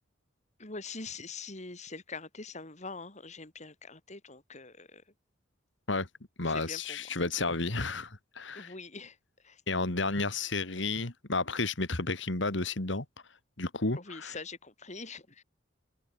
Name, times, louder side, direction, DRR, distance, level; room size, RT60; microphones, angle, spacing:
voice 1, 0.6-5.0 6.5-7.0 8.5-9.2 9.4-9.6 14.0-15.4, left 4 dB, 40° left, 3.3 m, -44 dB
voice 2, 6.4-8.7 9.7-13.0 13.6-14.4, left 3 dB, 65° left, 2.5 m, -32 dB
open air
head